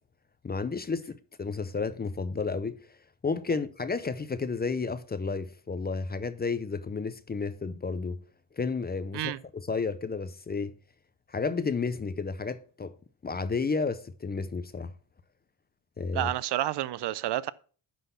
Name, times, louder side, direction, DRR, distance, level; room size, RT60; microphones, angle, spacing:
voice 1, 0.4-2.8 3.2-8.2 8.6-10.7 11.3-12.9 13.2-14.9 16.0-16.3, left 4 dB, 20° left, 0.5 m, -32 dB
voice 2, 16.1-17.5, right 14 dB, 60° right, 0.5 m, -29 dB
10.0 x 4.0 x 5.6 m
cardioid pair, 115°, 46 cm